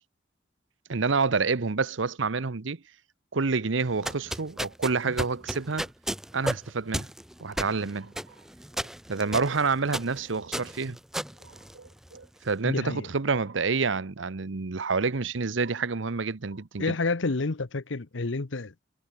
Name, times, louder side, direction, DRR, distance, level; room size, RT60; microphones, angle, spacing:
voice 1, 0.9-2.8 3.3-5.9 6.3-7.1 7.4-8.1 9.1-11.0 11.4-16.9, right 4 dB, 75° right, 0.9 m, -28 dB
sound 1, 3.9-12.2, equal, ahead, 0.5 m, -35 dB
voice 2, 12.6-13.1 16.8-18.8, left 3 dB, 75° left, 0.9 m, -29 dB
head